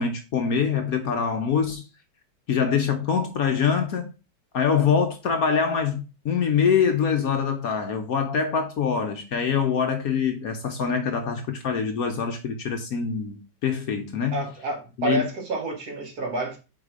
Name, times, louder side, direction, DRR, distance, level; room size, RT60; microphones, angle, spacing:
voice 1, 0.0-1.8 2.5-4.1 4.5-14.4 15.0-15.3, left 6 dB, 60° left, 1.1 m, -24 dB
voice 2, 14.3-16.6, right 2 dB, 55° right, 1.9 m, -29 dB
4.8 x 4.1 x 4.9 m
omnidirectional pair, 2.0 m